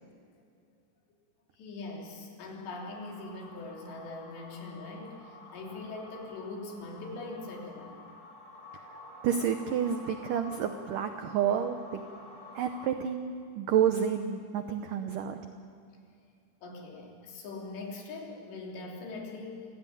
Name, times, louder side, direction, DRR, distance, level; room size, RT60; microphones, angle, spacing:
voice 1, 1.6-8.3 16.6-19.7, left 3 dB, 75° left, -1 dB, 5.5 m, -42 dB
sound 1, 2.9-12.9, left 2 dB, 10° left, 2.6 m, -50 dB
voice 2, 9.2-12.0 12.5-15.4, right 8 dB, 85° right, 7 dB, 1.8 m, -30 dB
26.5 x 16.5 x 9.2 m, 2.4 s
omnidirectional pair, 5.1 m